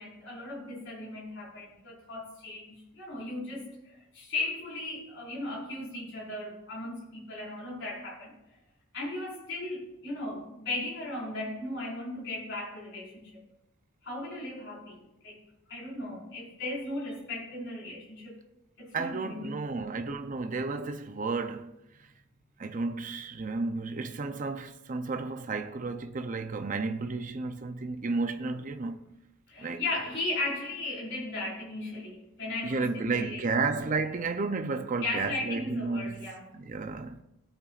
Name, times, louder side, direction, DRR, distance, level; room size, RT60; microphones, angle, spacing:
voice 1, 0.0-8.3 8.9-13.4 14.0-15.4 15.7-18.4 18.8-19.7 29.5-33.6 35.0-36.5, left 2 dB, 55° left, 4.8 m, -37 dB
voice 2, 18.9-21.7 22.6-29.0 29.6-29.8 32.6-37.2, right 3 dB, 35° right, 0.6 m, -32 dB
18.5 x 8.8 x 2.4 m
head